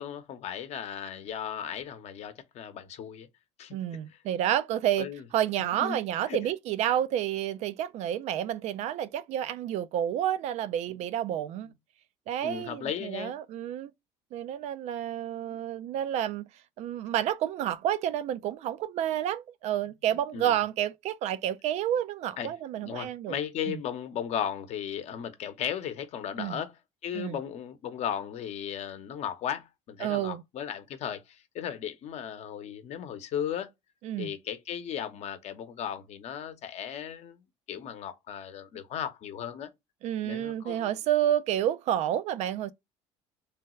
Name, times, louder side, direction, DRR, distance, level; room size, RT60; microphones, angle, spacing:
voice 1, 0.0-3.3 3.6-3.7 5.0-5.2 5.8-6.0 6.3-6.4 12.4-13.3 15.5-15.6 20.3-20.6 22.4-22.5 22.8-26.7 27.0-33.7 34.2-37.4 37.7-39.7 40.2-40.9, left 9 dB, 55° left, 0.8 m, -36 dB
voice 2, 3.7-5.1 5.3-11.7 12.3-13.9 14.3-16.5 16.8-23.4 23.7-23.8 26.4-26.6 27.1-27.4 30.0-30.4 34.0-34.3 40.0-42.7, right 11 dB, 60° right, 0.4 m, -30 dB
3.3 x 2.2 x 3.0 m
supercardioid pair, 85°, 13 cm